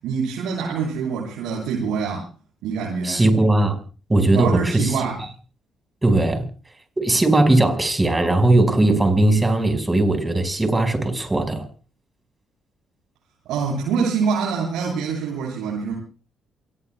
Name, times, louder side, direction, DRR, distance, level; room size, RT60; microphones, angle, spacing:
voice 1, 0.0-2.3 2.6-3.2 4.3-5.2 13.5-15.9, right 5 dB, 90° right, 7.4 m, -25 dB
voice 2, 3.0-3.8 4.1-5.0 6.0-6.5 7.0-11.7, right 2 dB, 15° right, 5.3 m, -18 dB
28.0 x 20.0 x 2.3 m
cardioid pair, 90°, 0 cm